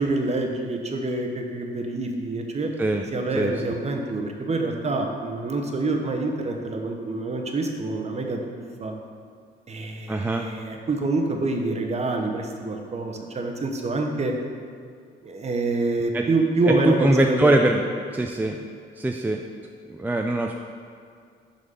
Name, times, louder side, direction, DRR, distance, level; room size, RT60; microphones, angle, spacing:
voice 1, 0.0-2.7 3.1-8.9 9.7-14.4 15.2-17.7, right 2 dB, 35° right, 3 dB, 0.8 m, -26 dB
voice 2, 10.1-10.5 16.1-16.3 16.7-17.8 18.1-18.6 19.0-19.4 19.9-20.5, right 1 dB, 10° right, 2 dB, 0.3 m, -22 dB
6.3 x 4.0 x 5.3 m, 2.2 s
cardioid pair, 90°, 20 cm